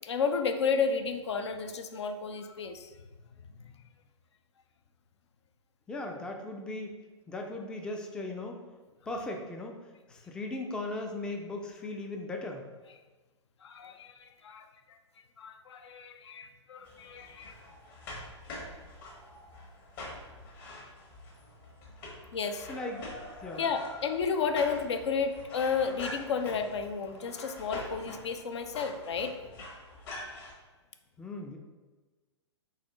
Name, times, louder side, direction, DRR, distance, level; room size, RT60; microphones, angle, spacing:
voice 1, 0.0-2.9 13.6-15.0 15.4-17.6 22.3-22.7 23.6-29.3, left 5 dB, 65° left, 7 dB, 0.5 m, -32 dB
voice 2, 5.9-6.9 7.3-8.6 9.1-9.8 10.1-12.6 22.7-23.0 23.4-23.6 31.2-31.6, left 2 dB, 5° left, 2 dB, 0.3 m, -37 dB
sound 1, 16.8-30.5, left 1 dB, 45° left, 1.3 m, -45 dB
4.1 x 3.0 x 3.8 m, 1.3 s
figure-of-eight pair, 115°, 15 cm